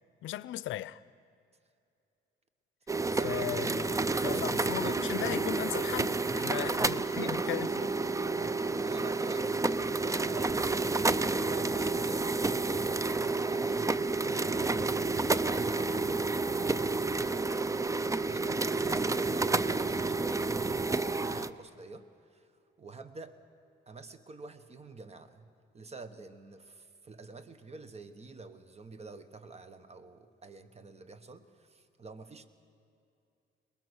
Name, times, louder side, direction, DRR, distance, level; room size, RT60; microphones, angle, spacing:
voice 1, 0.2-1.0 3.2-7.9, left 14 dB, 80° left, 0.5 m, -37 dB
sound 1, 2.9-21.5, right 3 dB, 15° right, 0.5 m, -30 dB
voice 2, 2.9-3.5 4.2-5.0 6.6-6.8 7.1-7.5 8.3-10.9 11.4-14.8 15.1-17.7 18.2-22.5 22.8-23.4 23.9-32.5, right 3 dB, 30° right, 1.3 m, -48 dB
22.5 x 20.0 x 6.3 m
cardioid pair, 90°, 20 cm